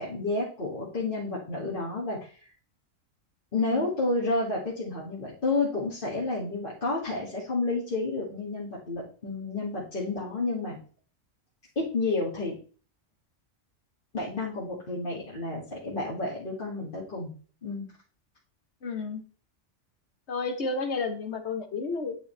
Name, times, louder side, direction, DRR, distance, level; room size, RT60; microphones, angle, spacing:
voice 1, 0.0-2.3 3.5-10.8 11.8-12.6 14.1-17.3 17.6-17.9, left 3 dB, 45° left, -8 dB, 2.2 m, -30 dB
voice 2, 18.8-19.2 20.3-22.2, left 4 dB, 65° left, 7 dB, 1.3 m, -31 dB
9.1 x 5.4 x 3.3 m, 0.40 s
omnidirectional pair, 1.3 m